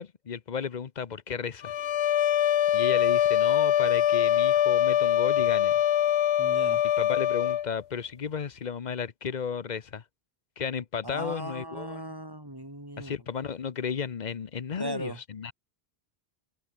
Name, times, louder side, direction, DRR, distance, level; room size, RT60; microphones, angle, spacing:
voice 1, 0.0-1.7 2.7-5.7 7.0-10.0 10.6-12.0 13.0-15.5, left 6 dB, 45° left, 0.9 m, -34 dB
sound 1, 1.6-7.7, left 11 dB, 80° left, 0.9 m, -23 dB
voice 2, 6.4-6.8 11.0-13.1 14.8-15.2, right 1 dB, 20° right, 4.6 m, -37 dB
omnidirectional pair, 1.1 m